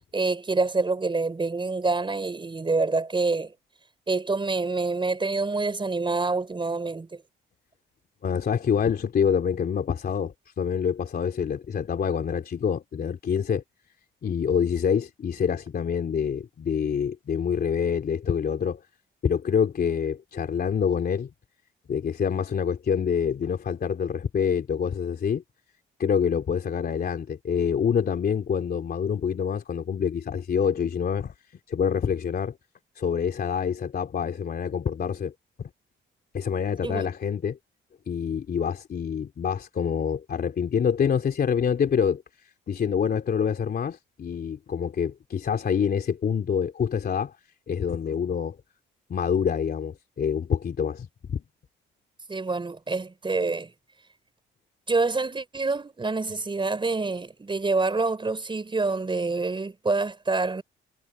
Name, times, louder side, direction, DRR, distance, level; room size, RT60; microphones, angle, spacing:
voice 1, 0.1-3.5 4.1-7.2 36.8-37.1 52.3-53.7 54.9-60.6, right 3 dB, 25° right, 5.4 m, -26 dB
voice 2, 8.2-13.6 14.2-18.8 19.2-21.3 21.9-25.4 26.0-31.3 31.7-32.6 32.9-35.3 35.6-35.7 36.3-37.6 38.1-42.2 42.7-47.3 47.7-48.6 49.1-51.4, left 7 dB, 50° left, 3.2 m, -26 dB
cardioid pair, 90°, 20 cm